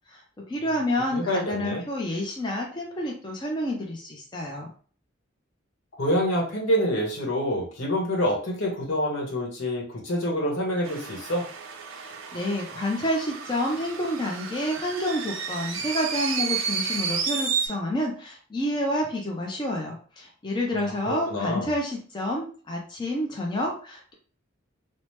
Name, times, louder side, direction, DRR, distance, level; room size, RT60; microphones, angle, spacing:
voice 1, 0.1-4.7 12.3-24.1, left 1 dB, 25° left, -1 dB, 0.4 m, -29 dB
voice 2, 1.1-1.8 6.0-11.4 20.8-21.7, equal, 75° left, -2 dB, 1.1 m, -27 dB
sound 1, 10.8-17.7, right 6 dB, 80° right, 0.5 m, -32 dB
2.8 x 2.0 x 3.1 m, 0.42 s
head